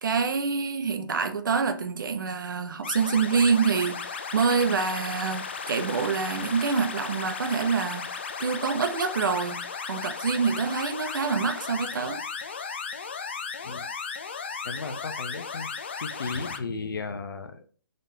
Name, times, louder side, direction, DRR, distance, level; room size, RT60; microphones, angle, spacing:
voice 1, 0.0-9.6 9.9-12.2, right 5 dB, 65° right, 0.7 m, -26 dB
sound 1, 2.8-16.6, left 5 dB, 30° left, 0.3 m, -35 dB
voice 2, 14.6-15.7 16.0-17.6, left 4 dB, 70° left, 0.7 m, -35 dB
3.8 x 3.5 x 2.8 m
hypercardioid pair, 175°, 12 cm